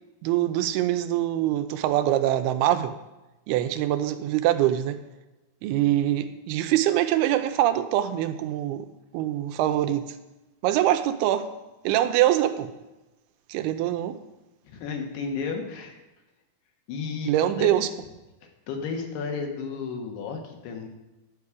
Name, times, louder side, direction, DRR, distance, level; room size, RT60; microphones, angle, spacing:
voice 1, 0.2-3.0 3.5-5.0 5.6-8.9 9.1-10.1 10.6-11.5 11.8-12.7 13.5-14.2 17.3-17.9, right 13 dB, 85° right, 9 dB, 2.5 m, -24 dB
voice 2, 14.6-16.0 16.9-17.8 18.7-20.9, left 5 dB, 85° left, 3 dB, 3.3 m, -33 dB
11.0 x 4.8 x 8.3 m, 1.0 s
omnidirectional pair, 4.5 m